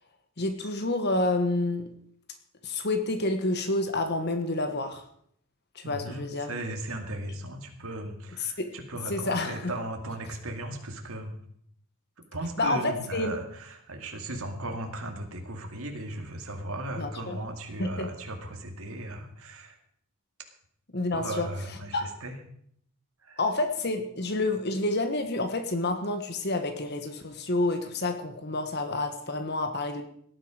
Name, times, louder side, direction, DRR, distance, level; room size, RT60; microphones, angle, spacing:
voice 1, 0.4-1.9 2.6-5.0 5.7-6.5 8.4-8.8 9.1-9.7 12.6-13.3 17.0-17.4 17.8-18.1 20.9-21.5 21.9-22.0 23.4-30.0, left 2 dB, 50° left, 7 dB, 1.5 m, -29 dB
voice 2, 5.8-11.3 12.3-19.8 21.1-22.4 23.2-23.4, right 1 dB, 80° right, 3 dB, 2.2 m, -37 dB
18.0 x 10.5 x 5.1 m, 0.66 s
head